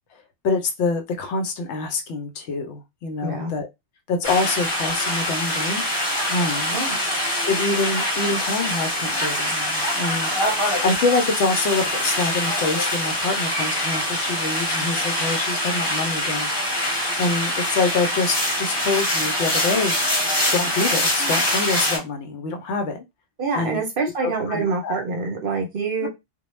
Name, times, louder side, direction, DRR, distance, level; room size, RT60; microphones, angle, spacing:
voice 1, 0.4-3.7 4.1-5.8 6.3-6.8 7.5-10.3 10.8-16.5 17.2-20.0 20.5-23.0 23.6-23.8 24.2-24.9 26.0-26.1, left 3 dB, 75° left, 0.8 m, -25 dB
voice 2, 3.2-3.5 6.7-7.0 23.4-26.1, right 4 dB, 60° right, 0.7 m, -26 dB
sound 1, 4.2-22.0, left 1 dB, 25° left, 1.0 m, -24 dB
2.2 x 2.0 x 3.0 m
omnidirectional pair, 1.2 m